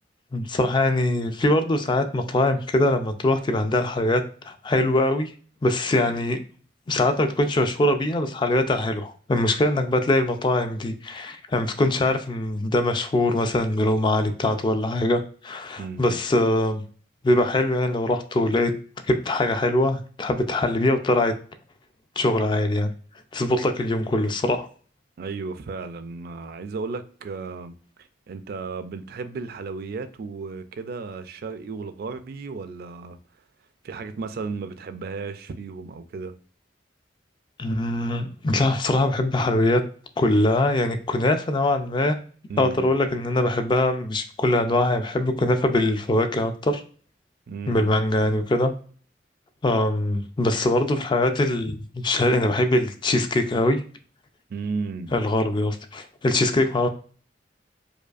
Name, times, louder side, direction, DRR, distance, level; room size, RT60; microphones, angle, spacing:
voice 1, 0.3-5.3 5.6-6.4 6.9-16.8 17.2-18.7 19.1-21.3 22.2-22.9 23.3-24.7 37.6-39.8 40.2-42.2 42.6-46.8 47.7-48.7 49.6-53.8 55.1-56.9, left 1 dB, 25° left, 0.3 m, -22 dB
voice 2, 15.8-16.2 25.2-33.2 33.8-36.3 42.5-42.9 47.5-47.9 54.5-55.2, right 4 dB, 55° right, 0.3 m, -34 dB
4.8 x 2.3 x 2.4 m
head